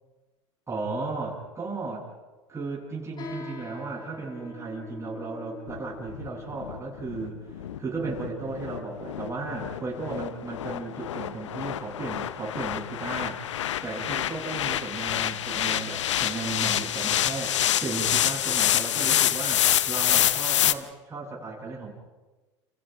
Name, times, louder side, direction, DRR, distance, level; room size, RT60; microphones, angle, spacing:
voice 1, 0.7-2.1 2.5-13.5 13.8-21.9, right 3 dB, 20° right, -4 dB, 8.0 m, -35 dB
sound 1, 3.2-10.9, left 2 dB, 30° left, 5.8 m, -45 dB
sound 2, 5.7-20.7, left 11 dB, 80° left, 0.8 m, -27 dB
29.5 x 29.5 x 3.6 m, 1.2 s
hypercardioid pair, 80°, 15 cm